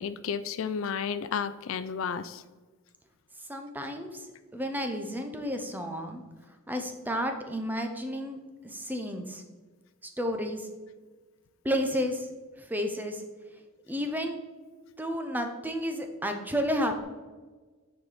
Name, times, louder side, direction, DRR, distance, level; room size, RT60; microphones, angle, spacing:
voice 1, 0.0-2.4, left 6 dB, 60° left, 14 dB, 0.3 m, -32 dB
voice 2, 3.5-4.2 4.5-6.2 6.7-8.4 8.6-9.4 10.0-10.7 11.6-12.3 12.7-13.2 13.9-14.4 15.0-17.0, equal, 10° right, 5 dB, 0.7 m, -31 dB
9.3 x 4.7 x 4.1 m, 1.3 s
head